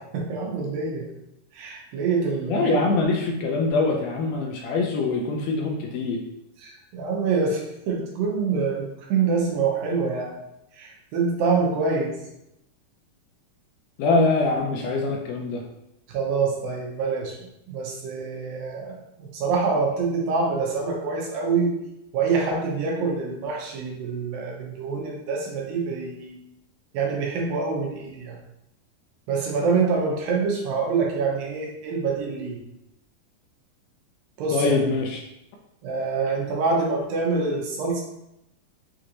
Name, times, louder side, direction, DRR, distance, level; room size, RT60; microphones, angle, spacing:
voice 1, 0.1-1.1 1.5-3.0 6.6-10.3 10.8-12.1 16.1-17.3 17.7-21.7 22.1-26.4 26.9-28.4 29.3-32.6 34.4-34.8 35.8-38.0, right 4 dB, 90° right, -2 dB, 2.6 m, -26 dB
voice 2, 2.5-6.2 14.0-15.6 34.5-35.2, left 3 dB, 80° left, 1 dB, 2.0 m, -23 dB
6.4 x 2.9 x 2.5 m, 0.85 s
omnidirectional pair, 4.1 m